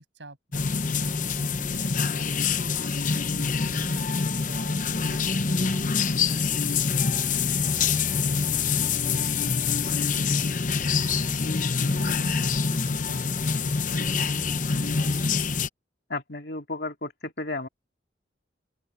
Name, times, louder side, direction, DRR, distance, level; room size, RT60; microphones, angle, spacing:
voice 1, 0.0-15.1, right 1 dB, 90° right, 7.6 m, -47 dB
sound 1, 0.5-15.7, left 5 dB, 45° left, 0.8 m, -25 dB
voice 2, 16.1-17.7, left 2 dB, 65° left, 2.8 m, -33 dB
open air
head